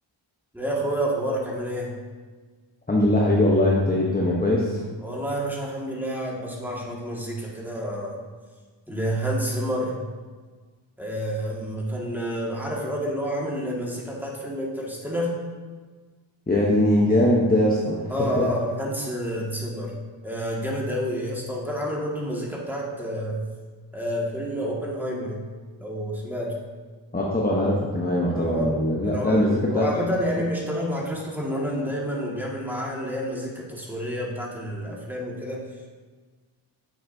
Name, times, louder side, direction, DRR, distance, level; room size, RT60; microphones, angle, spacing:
voice 1, 0.5-2.0 5.0-8.2 8.9-10.0 11.0-15.3 18.1-19.9 20.2-23.4 23.9-25.4 25.8-26.6 28.3-28.8 29.0-35.6, equal, 5° right, -4 dB, 1.9 m, -29 dB
voice 2, 2.9-4.8 16.5-18.5 27.1-29.9, left 1 dB, 20° left, -3 dB, 0.9 m, -21 dB
9.1 x 6.0 x 2.7 m, 1.5 s
cardioid pair, 55°, 50 cm